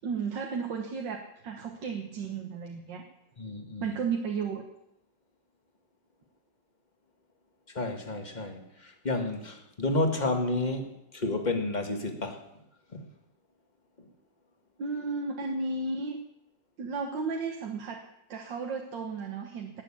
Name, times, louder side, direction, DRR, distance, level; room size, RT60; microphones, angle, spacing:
voice 1, 0.0-3.0 3.8-4.6 14.8-16.2 16.8-19.8, right 4 dB, 85° right, 2 dB, 2.0 m, -34 dB
voice 2, 3.4-4.0 7.7-12.4 12.9-13.0 14.0-14.1, left 2 dB, 25° left, 4 dB, 1.8 m, -31 dB
19.0 x 6.9 x 8.7 m, 0.83 s
omnidirectional pair, 1.9 m